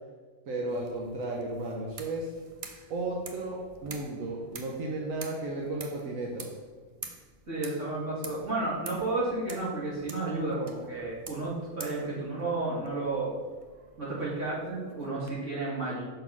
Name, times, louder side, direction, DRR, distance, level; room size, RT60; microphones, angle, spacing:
voice 1, 0.5-2.3 2.9-6.5, right 2 dB, 85° right, -1 dB, 1.2 m, -34 dB
sound 1, 0.7-15.3, right 4 dB, 45° right, 0.4 m, -48 dB
voice 2, 7.5-13.3 14.0-16.0, right 2 dB, 65° right, -7 dB, 2.5 m, -32 dB
5.6 x 4.2 x 5.8 m, 1.4 s
omnidirectional pair, 1.4 m